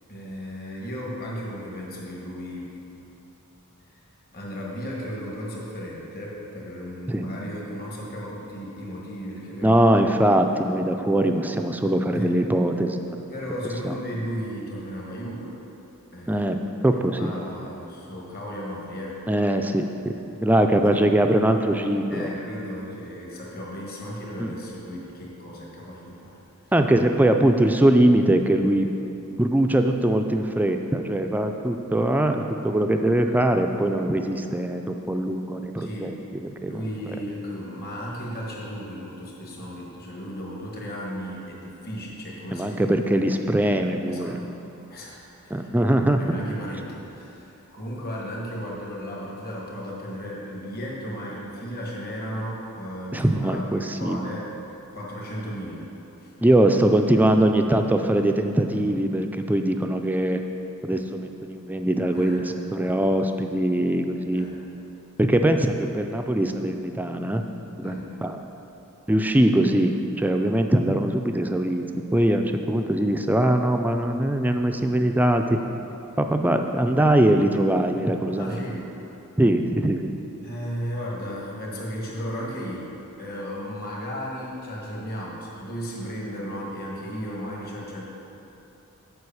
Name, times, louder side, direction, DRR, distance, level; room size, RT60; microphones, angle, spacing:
voice 1, 0.1-2.7 3.9-4.0 4.3-9.8 12.1-12.3 13.3-15.6 16.1-16.4 16.9-19.2 22.1-26.4 35.8-36.1 36.6-43.5 44.1-44.4 44.9-45.7 46.2-54.5 54.9-55.9 56.2-56.3 62.1-62.5 64.3-64.6 67.8-68.1 78.4-78.9 80.4-82.9 83.2-88.0, equal, 45° left, -3 dB, 1.5 m, -35 dB
voice 2, 9.6-13.2 13.8-13.9 16.3-16.6 16.8-17.3 19.3-20.2 20.4-22.3 24.4-24.5 26.7-29.0 29.4-36.1 36.6-36.7 42.5-44.4 45.5-46.4 53.1-54.2 56.4-60.4 60.8-62.4 62.7-64.5 65.2-67.4 67.8-67.9 68.2-68.4 69.1-71.8 72.1-75.6 76.2-78.6 79.4-80.1, right 1 dB, 10° right, 5 dB, 0.3 m, -22 dB
7.9 x 5.0 x 7.0 m, 2.9 s
head